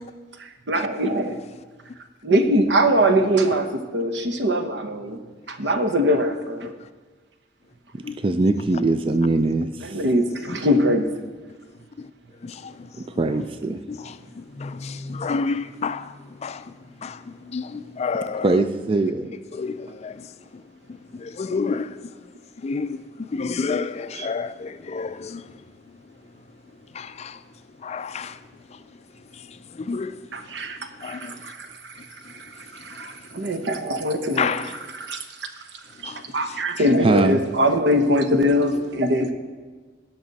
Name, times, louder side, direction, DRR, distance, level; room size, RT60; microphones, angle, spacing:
voice 1, 0.4-1.4 2.2-5.2 5.5-6.7 9.8-11.1 30.3-31.9 32.2-34.5 35.0-35.5 36.0-39.3, equal, 75° right, 0.9 m, -22 dB
voice 2, 8.2-10.0 13.0-13.8 18.4-19.3 37.0-37.4, right 2 dB, 30° right, 0.4 m, -22 dB
voice 3, 11.5-13.2 13.9-18.6 19.5-31.5 32.0-33.7 34.3-34.9 35.9-36.9, left 4 dB, 35° left, 0.4 m, -32 dB
17.5 x 6.0 x 4.0 m
head